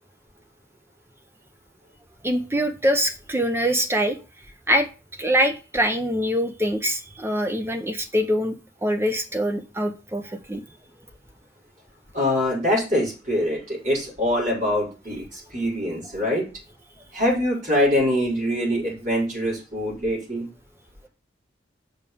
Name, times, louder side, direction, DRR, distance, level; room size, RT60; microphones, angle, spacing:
voice 1, 2.2-4.2 4.7-4.9 5.2-10.6, equal, 15° right, 6 dB, 0.8 m, -24 dB
voice 2, 12.1-16.4 17.1-20.5, left 1 dB, 40° right, -3 dB, 5.1 m, -24 dB
6.5 x 5.1 x 7.0 m, 0.33 s
head